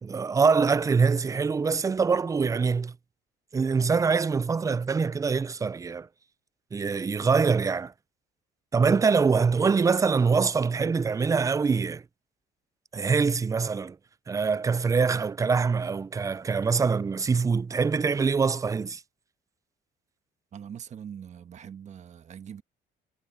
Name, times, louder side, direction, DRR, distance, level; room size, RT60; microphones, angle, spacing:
voice 1, 0.0-2.9 3.5-6.1 6.7-7.9 8.7-12.0 12.9-14.0 14.3-19.0, right 5 dB, 20° right, 0.4 m, -24 dB
voice 2, 20.5-22.6, right 8 dB, 45° right, 1.3 m, -42 dB
cardioid pair, 110°, 17 cm